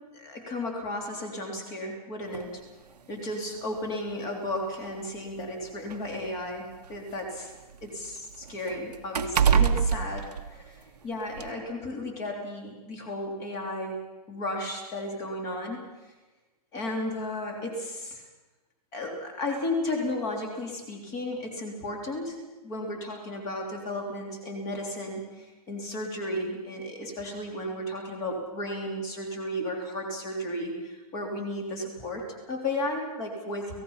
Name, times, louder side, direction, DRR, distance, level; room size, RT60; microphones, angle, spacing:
voice 1, 0.1-2.6 3.1-7.5 7.8-15.8 16.7-18.1 18.9-33.8, left 1 dB, 15° left, 2 dB, 3.3 m, -34 dB
sound 1, 2.3-2.5 3.6-3.7 4.1-4.2 5.2-7.2 7.5-11.0 11.4-11.5, right 7 dB, 90° right, 1.7 m, -27 dB
29.5 x 17.5 x 5.7 m, 1.1 s
hypercardioid pair, 175°, 20 cm